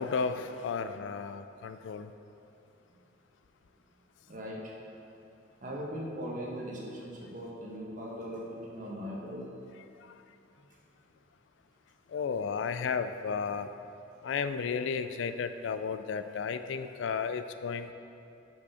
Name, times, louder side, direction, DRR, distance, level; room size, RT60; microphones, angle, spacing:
voice 1, 0.0-2.1 12.1-13.7 14.2-17.9, left 5 dB, 70° left, 10 dB, 0.3 m, -33 dB
voice 2, 4.3-4.6 5.6-9.4, equal, 40° right, -3 dB, 1.3 m, -39 dB
6.2 x 5.9 x 5.7 m, 2.8 s
head